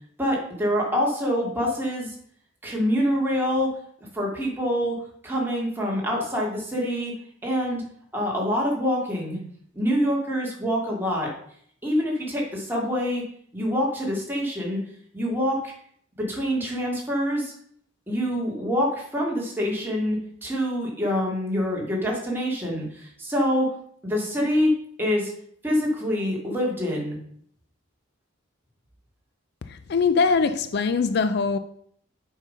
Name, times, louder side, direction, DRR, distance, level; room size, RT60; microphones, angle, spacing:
voice 1, 0.2-2.1 2.6-3.8 4.1-7.1 7.4-7.8 8.1-9.4 9.7-11.3 11.8-13.2 13.5-14.8 15.1-15.7 16.2-17.5 18.1-23.7 24.0-24.7 25.0-25.3 25.6-27.2, equal, 10° right, 2.2 m, -25 dB
voice 2, 29.7-31.6, left 5 dB, 50° left, 0.4 m, -22 dB
7.2 x 5.6 x 5.5 m
head